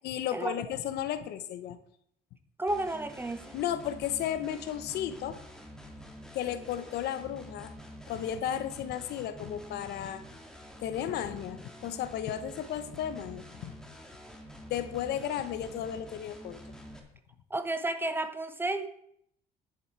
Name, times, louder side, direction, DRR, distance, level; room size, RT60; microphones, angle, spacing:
voice 1, 0.0-1.8 3.5-5.4 6.3-7.7 8.1-10.2 10.8-13.7 14.7-16.6, left 10 dB, 75° left, 12 dB, 1.0 m, -34 dB
voice 2, 2.6-3.6 17.5-18.9, right 2 dB, 10° right, 10 dB, 0.9 m, -32 dB
sound 1, 2.7-17.0, equal, 5° left, 1.9 m, -48 dB
10.5 x 7.9 x 4.6 m, 0.70 s
cardioid pair, 110°, 17 cm